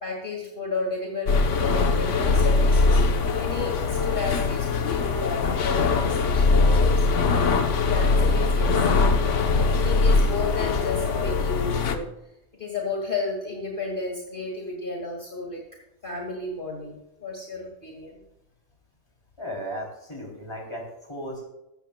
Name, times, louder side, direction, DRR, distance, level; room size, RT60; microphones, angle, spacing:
voice 1, 0.0-3.0 3.3-7.1 7.9-8.8 9.7-12.1 12.5-15.6 16.0-18.2, left 3 dB, 45° left, -2 dB, 2.4 m, -32 dB
sound 1, 1.3-12.0, left 3 dB, 80° left, 1.3 m, -21 dB
voice 2, 19.4-21.4, equal, 25° left, -1 dB, 3.4 m, -35 dB
16.5 x 13.0 x 2.3 m, 0.88 s
omnidirectional pair, 1.2 m